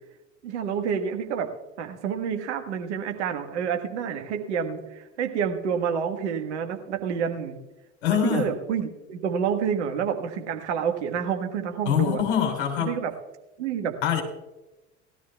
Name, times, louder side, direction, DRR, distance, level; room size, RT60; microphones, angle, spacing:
voice 1, 0.4-1.5 1.8-7.6 8.2-12.2 12.8-13.1 13.6-13.9, right 7 dB, 65° right, 5 dB, 1.4 m, -28 dB
voice 2, 8.0-8.5 11.8-13.0 14.0-14.2, left 9 dB, 65° left, 1 dB, 3.3 m, -24 dB
18.5 x 13.0 x 2.2 m, 1.0 s
figure-of-eight pair, 70°, 36 cm